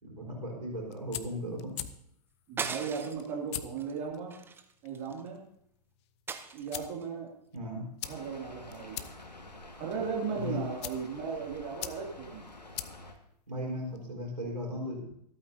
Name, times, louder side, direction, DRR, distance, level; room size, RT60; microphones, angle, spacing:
voice 1, 0.0-1.7 7.5-7.9 10.3-10.6 13.5-15.1, equal, 85° right, -2 dB, 4.5 m, -36 dB
sound 1, 0.7-14.1, left 13 dB, 40° left, 0.7 m, -46 dB
voice 2, 2.5-4.3 4.8-5.4 6.5-7.3 8.1-9.0 9.8-12.4, right 6 dB, 35° right, -2 dB, 2.6 m, -36 dB
sound 2, 2.6-3.3 3.8-4.0 4.3-5.3 6.3-7.0, right 5 dB, 10° right, 0.6 m, -39 dB
Rain, 8.0-13.1, left 2 dB, 85° left, 1.6 m, -49 dB
25.0 x 8.7 x 2.8 m, 0.70 s
figure-of-eight pair, 110°, 21 cm